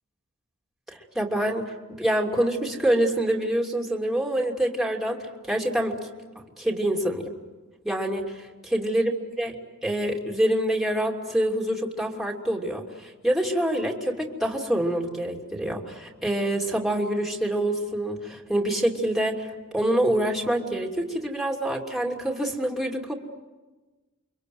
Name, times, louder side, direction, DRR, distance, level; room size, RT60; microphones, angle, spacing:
voice 1, 0.9-6.0 6.3-7.3 7.8-9.6 9.8-23.1, right 1 dB, ahead, 1 dB, 2.9 m, -26 dB
29.0 x 24.5 x 7.9 m, 1.2 s
head